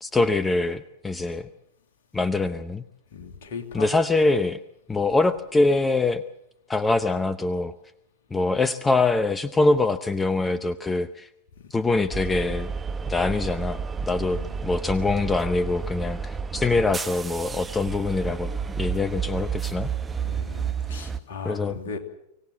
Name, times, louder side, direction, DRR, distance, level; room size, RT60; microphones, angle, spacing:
voice 1, 0.0-1.5 2.1-2.8 3.7-4.6 4.9-6.2 6.7-7.7 8.3-11.3 11.7-12.7 13.1-13.8 14.1-19.9 21.4-21.8, left 3 dB, 10° left, 0.8 m, -24 dB
voice 2, 3.1-3.9 14.2-14.5 20.2-22.0, left 5 dB, 55° left, 2.7 m, -37 dB
sound 1, 12.1-21.2, right 6 dB, 15° right, 1.1 m, -31 dB
24.5 x 17.5 x 7.6 m
figure-of-eight pair, 90°, 0 cm